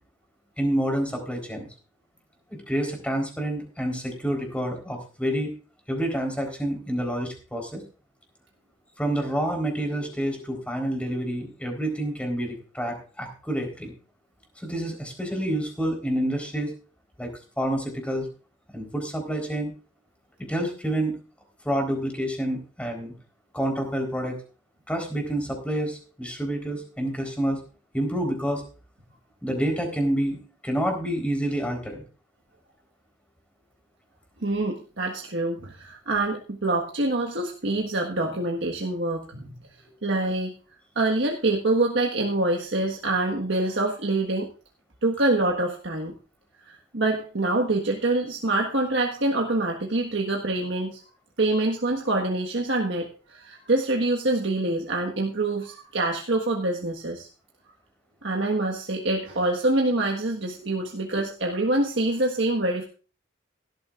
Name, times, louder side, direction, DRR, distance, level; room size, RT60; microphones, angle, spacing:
voice 1, 0.6-1.7 2.5-5.5 5.9-7.8 9.0-13.9 14.6-16.7 17.2-17.3 17.6-18.3 18.7-19.7 20.4-21.2 21.6-23.1 23.5-24.3 24.9-27.6 27.9-28.6 29.4-30.4 30.6-32.0, right 1 dB, 5° left, 2 dB, 4.0 m, -28 dB
voice 2, 34.4-39.5 40.0-40.5 40.9-44.5 45.0-46.1 46.9-51.0 51.4-57.3 58.2-62.8, right 2 dB, 70° right, 0 dB, 1.5 m, -25 dB
17.0 x 13.0 x 2.5 m, 0.37 s
head